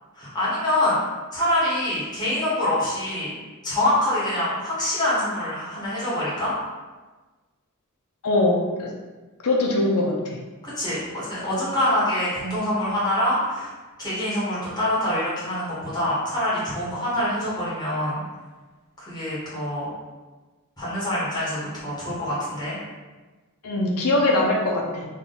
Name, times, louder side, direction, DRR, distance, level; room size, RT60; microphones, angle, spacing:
voice 1, 0.1-1.0 1.3-3.3 3.6-6.5 10.6-13.7 14.0-18.2 19.0-19.9 20.8-22.8, left 1 dB, 20° left, -10 dB, 1.4 m, -25 dB
voice 2, 8.2-8.9 9.4-10.4 23.6-25.1, left 2 dB, 75° left, -1 dB, 0.6 m, -22 dB
3.6 x 2.3 x 3.9 m, 1.3 s
head